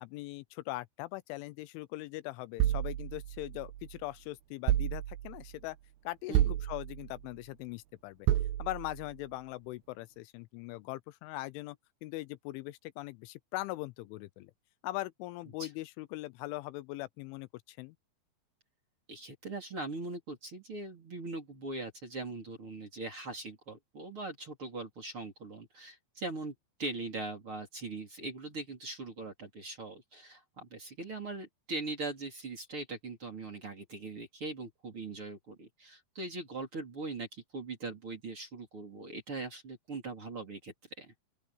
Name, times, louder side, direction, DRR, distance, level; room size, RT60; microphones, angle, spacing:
voice 1, 0.0-5.8 6.0-8.3 8.6-14.5 14.8-18.0, left 19 dB, 85° left, 3.0 m, -41 dB
sound 1, 2.6-4.0 4.7-5.5 6.3-7.2 8.3-9.1, right 12 dB, 80° right, 2.5 m, -31 dB
voice 2, 19.1-26.5 26.8-41.1, right 3 dB, 30° right, 4.1 m, -41 dB
open air
omnidirectional pair, 5.7 m